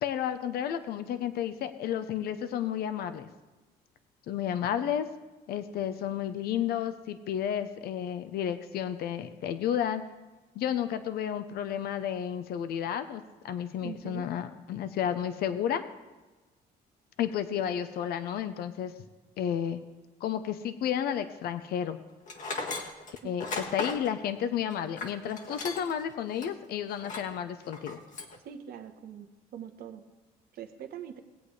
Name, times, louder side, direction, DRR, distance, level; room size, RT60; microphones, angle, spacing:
voice 1, 0.0-3.3 4.3-5.1 5.5-10.0 10.5-15.8 17.2-18.9 19.4-19.8 20.2-22.0 23.2-28.0, left 9 dB, 65° left, 10 dB, 0.8 m, -32 dB
voice 2, 13.8-14.3 23.2-23.3 28.4-29.3 29.5-30.0 30.5-31.2, right 9 dB, 65° right, 7 dB, 1.1 m, -42 dB
Tools, 22.3-26.0 26.4-26.5 27.0-27.4 27.7-28.4, left 3 dB, 50° left, 1.4 m, -36 dB
18.5 x 8.3 x 3.2 m, 1.2 s
cardioid pair, 110°, 17 cm